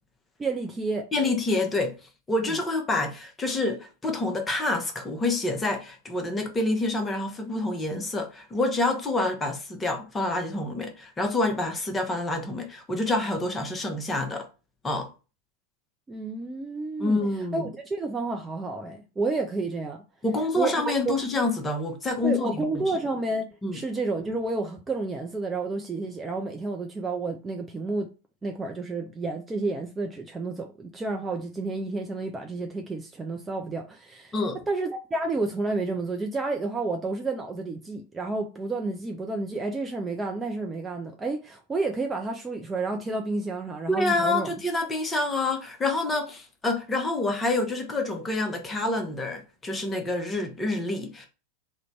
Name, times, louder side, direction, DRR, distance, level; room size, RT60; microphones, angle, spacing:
voice 1, 0.4-1.1 2.5-2.6 16.1-17.2 17.5-20.0 20.5-21.2 22.2-28.1 28.4-34.3 34.7-44.5, right 3 dB, 15° right, 0.5 m, -30 dB
voice 2, 1.1-2.0 2.3-14.5 14.8-15.1 17.0-17.7 20.2-22.8 23.6-23.8 34.3-34.6 43.9-51.3, left 2 dB, 15° left, 0.8 m, -27 dB
3.7 x 2.2 x 4.4 m
figure-of-eight pair, 90°, 0 cm